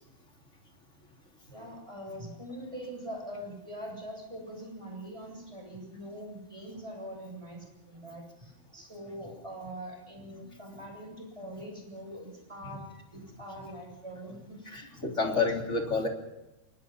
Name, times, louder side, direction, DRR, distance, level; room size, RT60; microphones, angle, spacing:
voice 1, 1.5-12.8 13.1-15.4, equal, 5° right, 1 dB, 7.4 m, -43 dB
voice 2, 14.7-16.1, left 4 dB, 20° left, 2 dB, 3.1 m, -29 dB
24.5 x 21.0 x 5.6 m, 0.98 s
omnidirectional pair, 4.6 m